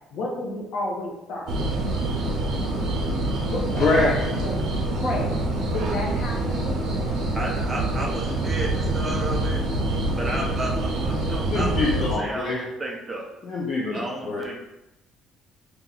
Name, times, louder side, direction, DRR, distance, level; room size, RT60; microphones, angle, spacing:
voice 1, 0.1-1.8 3.5-4.7 4.9-5.4 5.7-7.0 11.2-11.6, left 2 dB, 55° left, -2 dB, 0.9 m, -32 dB
sound 1, 1.5-12.1, right 2 dB, 60° right, 0.7 m, -26 dB
voice 2, 3.8-4.2 11.5-12.6 13.4-14.0 14.2-14.4, left 3 dB, 40° left, -4 dB, 0.5 m, -23 dB
voice 3, 7.3-9.6 10.2-13.2 13.9-14.6, right 2 dB, 15° right, -1 dB, 0.5 m, -32 dB
2.8 x 2.4 x 3.9 m, 0.92 s
cardioid pair, 155°, 0 cm